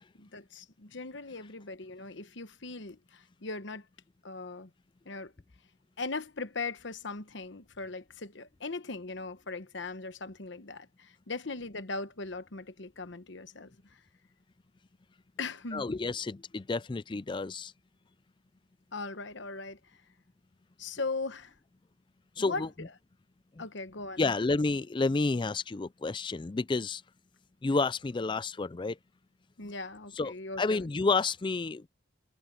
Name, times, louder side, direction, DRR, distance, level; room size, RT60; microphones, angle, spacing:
voice 1, 0.2-3.8 4.2-4.7 5.0-5.3 6.0-14.0 15.4-15.8 18.9-20.0 20.8-21.6 22.4-22.9 23.6-24.3 29.6-30.9, left 3 dB, 60° left, 1.2 m, -39 dB
voice 2, 15.7-17.7 22.4-22.7 24.2-27.0 27.6-29.0 30.2-31.9, left 3 dB, 25° left, 0.4 m, -30 dB
head